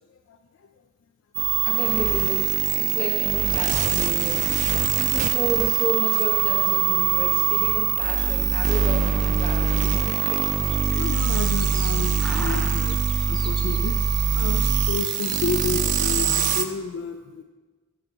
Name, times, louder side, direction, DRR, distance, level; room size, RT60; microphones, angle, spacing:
sound 1, 1.3-16.6, right 8 dB, 35° right, 0.3 m, -23 dB
voice 1, 1.6-4.4 5.0-10.4, left 1 dB, 30° left, -1 dB, 1.2 m, -32 dB
sound 2, 10.3-15.8, equal, 5° left, 0.7 m, -41 dB
voice 2, 10.9-14.0 14.4-17.4, left 4 dB, 60° left, 6 dB, 0.3 m, -31 dB
8.8 x 6.8 x 3.0 m, 1.3 s
head